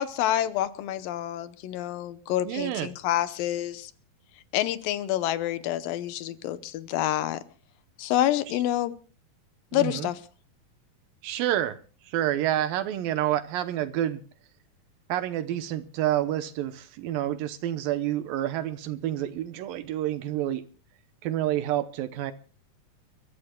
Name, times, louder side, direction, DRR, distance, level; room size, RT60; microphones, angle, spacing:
voice 1, 0.0-3.9 4.5-7.4 8.0-8.9 9.7-10.2, left 13 dB, 75° left, 2.5 m, -28 dB
voice 2, 2.5-2.9 9.7-10.1 11.2-11.8 12.0-14.2 15.1-20.6 21.2-22.3, right 12 dB, 75° right, 2.4 m, -28 dB
30.0 x 14.0 x 2.2 m
omnidirectional pair, 4.3 m